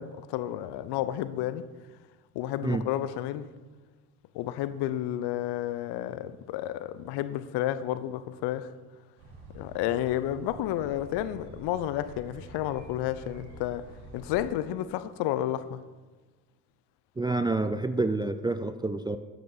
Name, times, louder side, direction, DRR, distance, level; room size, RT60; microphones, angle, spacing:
voice 1, 0.0-1.7 2.3-3.5 4.3-8.7 9.5-13.9 14.1-15.8, left 12 dB, 65° left, 0.7 m, -31 dB
sound 1, 9.2-14.4, right 1 dB, 80° right, 2.2 m, -48 dB
voice 2, 17.2-19.2, right 2 dB, 10° right, 0.4 m, -28 dB
11.5 x 6.8 x 4.0 m
hypercardioid pair, 65°, 45 cm